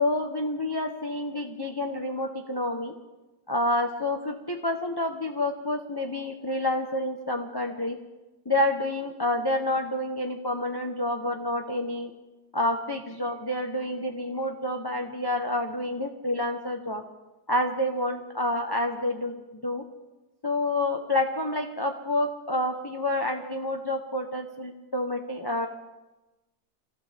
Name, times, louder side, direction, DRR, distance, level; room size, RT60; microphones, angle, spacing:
voice 1, 0.0-2.9 3.5-8.0 8.4-12.1 12.5-17.0 17.5-19.8 20.4-25.7, left 1 dB, 20° left, 2 dB, 0.9 m, -28 dB
27.5 x 14.5 x 3.6 m, 1.1 s
omnidirectional pair, 1.8 m